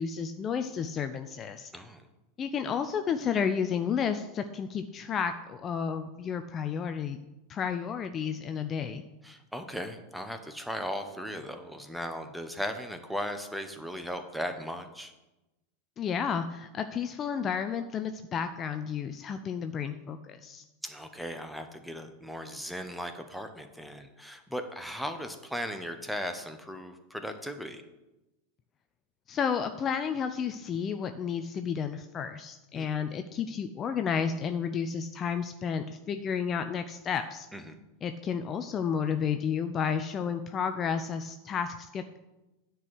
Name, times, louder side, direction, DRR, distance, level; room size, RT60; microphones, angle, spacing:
voice 1, 0.0-1.7 2.4-7.2 7.5-9.0 16.0-20.6 29.3-37.5 38.0-42.2, left 7 dB, 30° left, 8 dB, 0.5 m, -31 dB
voice 2, 9.2-15.1 20.8-27.8 32.7-32.9 37.5-37.8, equal, ahead, 7 dB, 1.1 m, -37 dB
9.8 x 4.7 x 7.7 m, 1.0 s
figure-of-eight pair, 90°, 0 cm